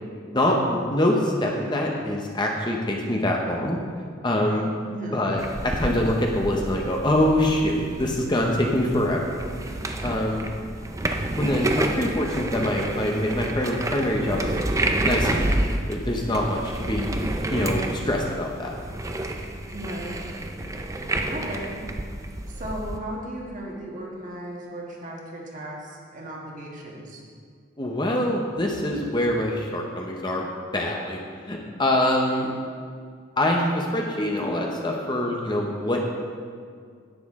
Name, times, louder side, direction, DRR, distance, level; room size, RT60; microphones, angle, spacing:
voice 1, 0.2-3.8 4.2-4.7 5.1-9.2 9.7-10.5 11.4-14.5 15.0-15.5 15.9-17.1 17.5-18.8 27.8-30.5 30.7-31.2 31.5-32.5 33.4-36.0, left 1 dB, 20° left, 0 dB, 0.8 m, -24 dB
voice 2, 4.9-5.2 19.7-20.2 21.3-21.8 22.5-27.2, right 1 dB, 40° right, -2 dB, 1.5 m, -36 dB
sound 1, 5.4-23.0, right 1 dB, 15° right, 0.5 m, -29 dB
10.0 x 9.4 x 3.6 m, 2.1 s
head